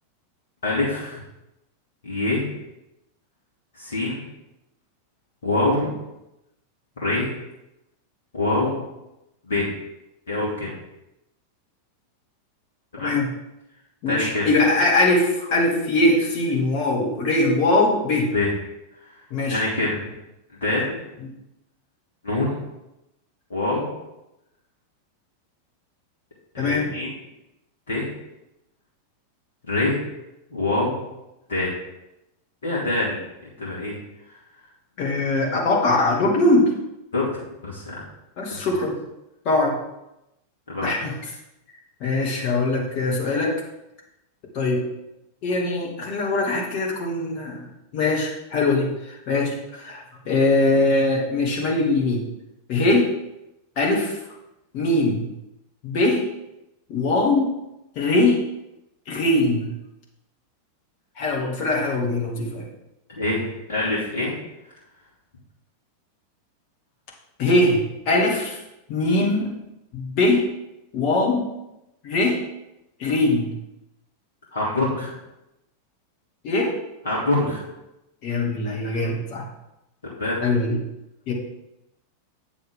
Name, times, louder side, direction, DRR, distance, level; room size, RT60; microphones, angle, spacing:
voice 1, 0.6-1.2 2.0-2.5 3.7-4.3 5.4-5.9 7.0-7.3 8.3-8.8 9.4-9.7 10.3-10.7 12.9-13.2 14.1-14.5 18.3-18.5 19.5-20.1 20.6-21.0 22.2-22.6 23.5-23.9 26.5-27.1 27.9-28.1 29.7-30.0 30.5-31.0 31.5-31.7 32.6-33.2 33.6-34.0 37.1-37.3 37.6-38.0 38.5-38.6 40.7-40.9 63.2-64.3 74.5-75.2 77.0-77.7 80.0-80.5, left 2 dB, 65° left, -5 dB, 2.4 m, -25 dB
voice 2, 14.0-18.3 19.3-19.6 26.6-26.9 35.0-36.7 38.4-39.0 39.4-39.8 40.8-41.1 42.0-43.5 44.5-44.8 45.4-47.7 47.9-48.9 49.3-52.2 52.7-53.1 53.8-54.2 54.7-55.3 55.8-56.2 56.9-57.5 58.0-58.4 59.1-59.7 61.2-62.7 67.4-68.6 68.9-69.5 69.9-70.4 70.9-71.4 72.0-72.4 73.0-73.5 76.4-76.7 78.2-79.4 80.4-80.8 81.3-81.4, left 2 dB, 45° left, -1 dB, 2.4 m, -21 dB
8.4 x 7.0 x 3.8 m, 0.90 s
figure-of-eight pair, 90°, 0 cm